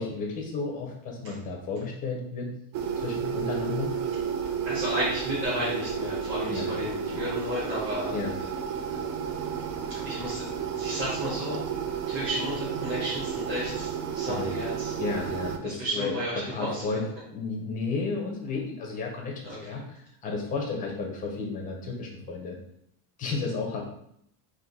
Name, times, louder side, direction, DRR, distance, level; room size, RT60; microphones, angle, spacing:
voice 1, 0.0-2.5 3.0-3.9 6.5-6.7 8.1-8.3 14.2-14.5 15.0-17.0 17.3-19.8 20.2-22.6 23.2-23.9, left 4 dB, 20° left, 0 dB, 0.5 m, -32 dB
sound 1, 2.7-15.6, right 7 dB, 60° right, 0.6 m, -32 dB
voice 2, 4.6-8.2 9.9-10.4 10.7-11.6 12.1-14.9 15.6-16.9 19.4-19.8, equal, 30° right, -10 dB, 1.2 m, -33 dB
3.7 x 2.6 x 3.9 m, 0.73 s
cardioid pair, 170°, 48 cm